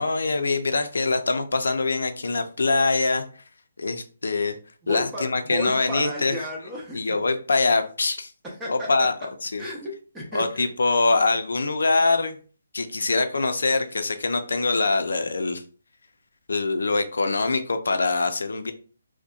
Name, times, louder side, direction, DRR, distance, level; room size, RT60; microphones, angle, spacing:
voice 1, 0.0-3.3 3.8-4.6 4.9-6.3 6.9-8.3 8.7-9.1 9.4-9.6 10.3-12.4 12.7-15.6 16.5-18.7, left 3 dB, 80° left, 8 dB, 0.4 m, -23 dB
voice 2, 4.8-7.2 8.4-9.1 9.6-10.6, equal, 10° right, -4 dB, 0.5 m, -33 dB
2.7 x 2.1 x 2.4 m, 0.39 s
hypercardioid pair, 160°, 0 cm